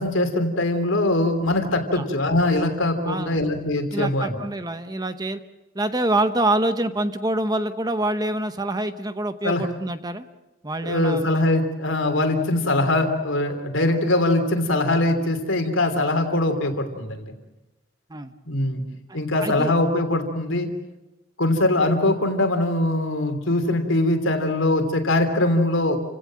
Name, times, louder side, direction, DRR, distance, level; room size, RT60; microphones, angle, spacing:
voice 1, 0.0-4.4 9.4-9.7 10.8-17.3 18.5-18.8 19.1-20.7 21.4-26.0, left 2 dB, 70° left, 6 dB, 3.2 m, -22 dB
voice 2, 3.0-3.4 3.9-5.4 5.7-10.3 10.6-11.4 13.9-14.0 18.1-18.3 19.4-19.7, right 1 dB, 20° right, 10 dB, 0.8 m, -26 dB
30.0 x 17.0 x 7.6 m, 1.0 s
head